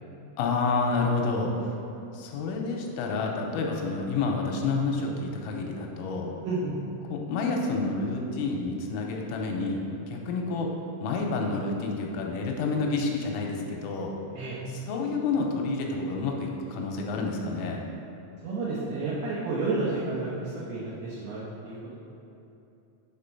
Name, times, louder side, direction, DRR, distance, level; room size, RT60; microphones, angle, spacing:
voice 1, 0.4-1.8 2.1-6.3 7.1-9.8 10.1-10.7 11.0-14.2 14.7-17.8, left 3 dB, 90° left, 1 dB, 3.3 m, -29 dB
voice 2, 6.4-6.8 14.4-14.6 18.4-22.0, right 3 dB, 85° right, -7 dB, 2.2 m, -31 dB
7.2 x 4.4 x 5.4 m, 2.8 s
omnidirectional pair, 6.0 m